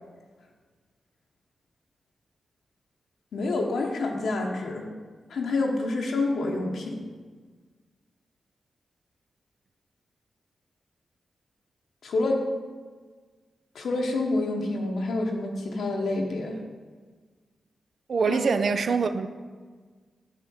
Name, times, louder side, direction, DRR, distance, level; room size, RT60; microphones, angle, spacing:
voice 1, 3.3-4.8 5.3-7.0 12.0-12.4 13.7-16.5 18.3-18.4, left 2 dB, 85° left, 0 dB, 0.9 m, -27 dB
voice 2, 18.1-19.3, right 5 dB, 65° right, 10 dB, 0.5 m, -24 dB
7.0 x 3.7 x 6.2 m, 1.5 s
cardioid pair, 50°, 0 cm